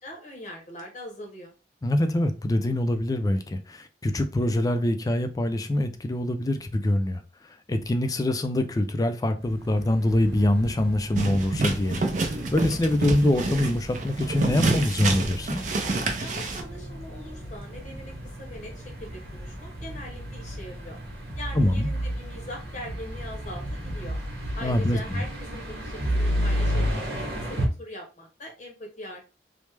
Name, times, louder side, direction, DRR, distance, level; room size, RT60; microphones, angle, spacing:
voice 1, 0.0-1.5 16.2-18.1 18.4-21.0 21.3-24.2 24.5-29.3, left 1 dB, 40° left, 0.7 m, -41 dB
voice 2, 1.8-7.2 7.7-15.6 21.6-21.9 24.6-25.0, left 1 dB, 20° left, 0.3 m, -24 dB
sound 1, 9.4-27.7, equal, 60° right, 1.1 m, -33 dB
sound 2, 11.1-16.6, right 2 dB, 45° right, 0.5 m, -27 dB
3.2 x 2.0 x 3.2 m
head